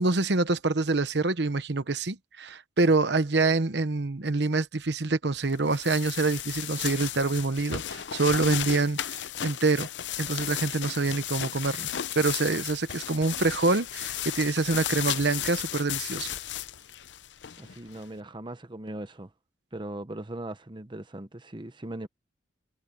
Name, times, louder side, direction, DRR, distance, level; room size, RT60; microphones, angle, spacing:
voice 1, 0.0-9.9 10.2-11.9 12.2-16.3, right 3 dB, 70° right, 1.0 m, -26 dB
sound 1, 5.5-18.0, left 11 dB, 80° left, 0.7 m, -34 dB
voice 2, 17.6-19.3 19.7-22.1, right 1 dB, 25° right, 1.0 m, -39 dB
head